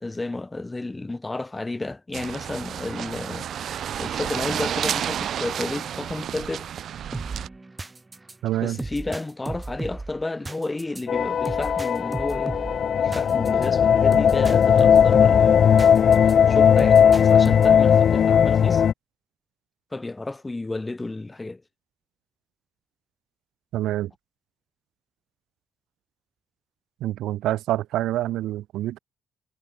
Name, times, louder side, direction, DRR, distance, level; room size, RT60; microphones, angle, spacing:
voice 1, 0.0-6.7 8.6-12.5 13.0-15.7 16.5-18.8 19.9-21.6, left 2 dB, 20° left, 1.3 m, -32 dB
sound 1, 2.1-7.5, right 9 dB, 65° right, 1.1 m, -30 dB
sound 2, 7.1-16.3 16.8-17.9, right 2 dB, 20° right, 1.1 m, -36 dB
voice 2, 8.4-8.8 23.7-24.1 27.0-29.0, right 14 dB, 85° right, 0.5 m, -26 dB
sound 3, 11.1-18.9, left 8 dB, 55° left, 0.4 m, -17 dB
cardioid pair, 90°, 0 cm